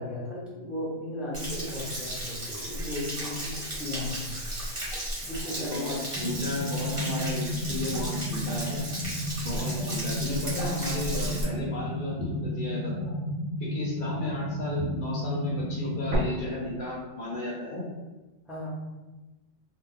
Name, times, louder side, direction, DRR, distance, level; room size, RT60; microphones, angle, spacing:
voice 1, 0.0-4.3 5.2-6.0 18.5-18.7, left 1 dB, ahead, -7 dB, 0.4 m, -36 dB
Stream / Splash splatter / Trickle dribble, 1.3-11.4, right 1 dB, 30° right, 0.8 m, -35 dB
voice 2, 5.6-8.8 9.4-13.1 13.6-17.9, left 1 dB, 50° left, -3 dB, 0.6 m, -34 dB
sound 1, 6.2-16.2, left 1 dB, 60° right, 0.8 m, -32 dB
2.4 x 2.3 x 3.7 m, 1.1 s
omnidirectional pair, 1.4 m